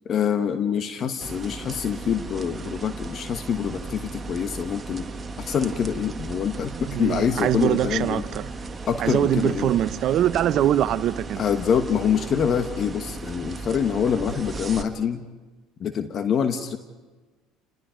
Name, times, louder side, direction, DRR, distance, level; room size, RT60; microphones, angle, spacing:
voice 1, 0.0-5.1 5.4-8.2 8.9-9.7 11.4-15.2 15.8-16.8, left 7 dB, 45° left, 1.2 m, -25 dB
sound 1, 1.2-14.8, right 3 dB, 25° right, 1.6 m, -36 dB
voice 2, 6.7-8.5 9.0-11.4, right 11 dB, 55° right, 0.8 m, -23 dB
29.5 x 20.0 x 5.2 m
supercardioid pair, 85°, 0 cm